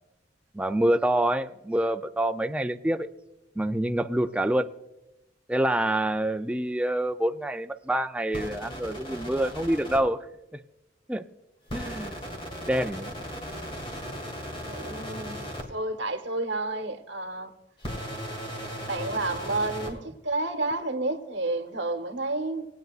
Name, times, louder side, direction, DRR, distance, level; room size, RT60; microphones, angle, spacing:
voice 1, 0.5-3.1 3.6-4.7 5.5-10.3 10.5-10.6 11.1-11.2 11.7-12.2 12.7-13.1 18.1-18.2, right 1 dB, 5° right, 0.4 m, -26 dB
sound 1, 8.3-10.0 11.7-15.6 17.8-19.9, equal, 30° left, 1.9 m, -37 dB
voice 2, 14.6-15.4 15.7-17.5 18.9-22.6, right 2 dB, 70° right, 1.2 m, -30 dB
19.5 x 9.1 x 2.4 m
head